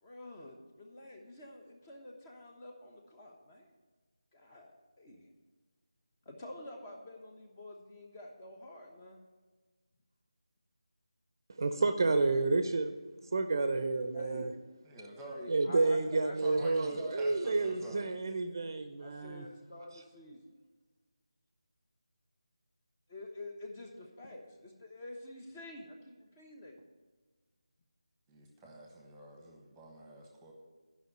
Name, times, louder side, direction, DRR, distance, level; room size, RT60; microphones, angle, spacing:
voice 1, 0.0-3.7 4.3-5.2 6.2-9.2 14.1-14.5 15.2-16.7 17.0-17.2 19.0-20.4 23.1-26.8, left 1 dB, 20° left, 1.1 m, -48 dB
voice 2, 11.6-13.0 13.3-14.5 15.5-19.5, right 3 dB, 40° right, 0.7 m, -30 dB
voice 3, 14.8-15.5 16.4-18.0 28.3-30.5, equal, 5° right, 1.2 m, -47 dB
11.5 x 5.6 x 6.7 m
figure-of-eight pair, 165°, 3 cm